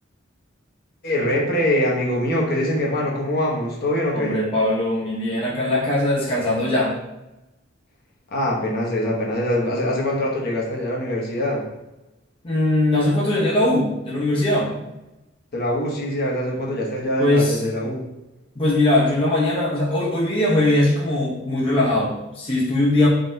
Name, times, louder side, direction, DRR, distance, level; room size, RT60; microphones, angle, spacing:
voice 1, 1.0-4.4 8.3-11.6 15.5-18.0, left 1 dB, 50° left, -2 dB, 0.9 m, -23 dB
voice 2, 4.1-6.9 12.4-14.7 17.2-17.6 18.6-23.1, left 1 dB, 25° left, -5 dB, 0.7 m, -20 dB
4.3 x 3.7 x 2.6 m, 0.97 s
head